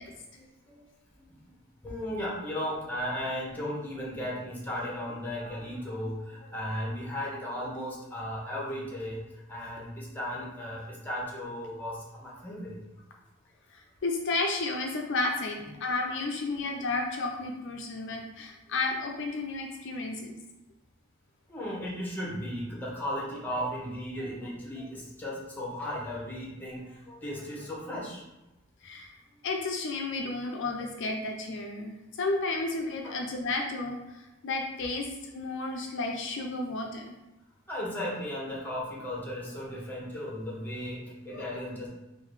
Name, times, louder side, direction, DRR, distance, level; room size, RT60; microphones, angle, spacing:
voice 1, 0.3-0.8 1.1-1.5 1.8-9.2 9.5-12.8 15.6-16.1 16.5-16.6 21.5-28.2 32.5-32.6 33.0-33.2 37.7-41.9, equal, 10° left, -4 dB, 1.1 m, -36 dB
voice 2, 14.0-20.4 28.8-29.1 29.4-34.0 34.4-35.0 35.3-37.2 41.3-41.4, left 3 dB, 60° left, 2 dB, 0.5 m, -32 dB
3.6 x 2.6 x 4.7 m, 0.99 s
head